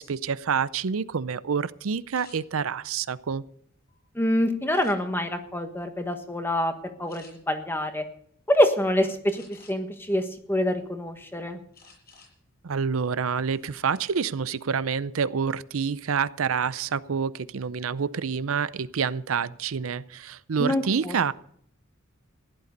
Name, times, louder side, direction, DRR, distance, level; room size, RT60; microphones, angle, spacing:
voice 1, 0.0-3.4 12.6-21.3, right 6 dB, 90° right, 16 dB, 0.6 m, -27 dB
sound 1, 2.1-2.4 3.0-4.0 4.7-5.3 5.8-6.1 6.4-6.6 7.1-7.3 9.3-10.0 10.5-11.2 11.7-12.3 12.7-12.9 13.3-13.6, left 4 dB, 50° left, 7.7 m, -53 dB
voice 2, 4.1-6.7 7.0-8.0 8.5-11.6 20.6-21.3, left 1 dB, 10° left, 7 dB, 1.3 m, -26 dB
15.5 x 11.0 x 5.3 m, 0.66 s
head